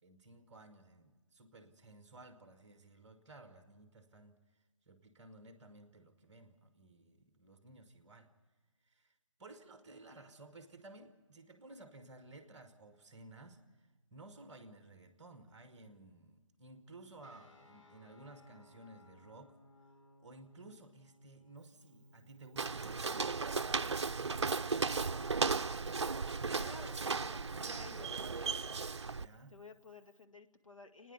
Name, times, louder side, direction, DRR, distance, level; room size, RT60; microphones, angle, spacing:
voice 1, 0.0-4.4 4.8-8.3 8.8-19.6 20.2-23.4 29.0-29.6, right 2 dB, 15° right, 7 dB, 1.4 m, -56 dB
sound 1, 17.2-26.2, left 2 dB, 65° left, 3.6 m, -64 dB
Walk footsteps, 22.6-29.3, right 4 dB, 60° right, 0.5 m, -35 dB
voice 2, 26.5-27.4 27.6-28.5 29.5-31.1, left 3 dB, 80° left, 5 dB, 1.6 m, -53 dB
28.5 x 9.9 x 9.4 m, 1.3 s
figure-of-eight pair, 150°, 17 cm